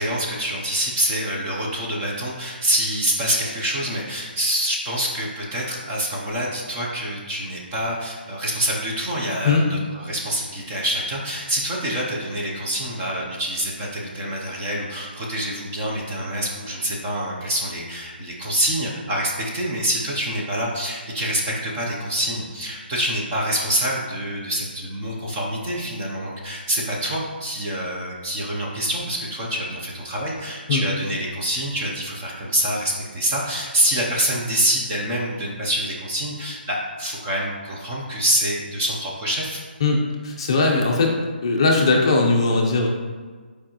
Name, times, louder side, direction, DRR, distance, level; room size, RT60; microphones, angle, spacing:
voice 1, 0.0-39.6, equal, 15° right, -4 dB, 0.6 m, -26 dB
voice 2, 39.8-41.1 41.4-42.9, left 3 dB, 25° left, 0 dB, 0.7 m, -19 dB
7.6 x 4.7 x 2.9 m, 1.5 s
hypercardioid pair, 180°, 6 cm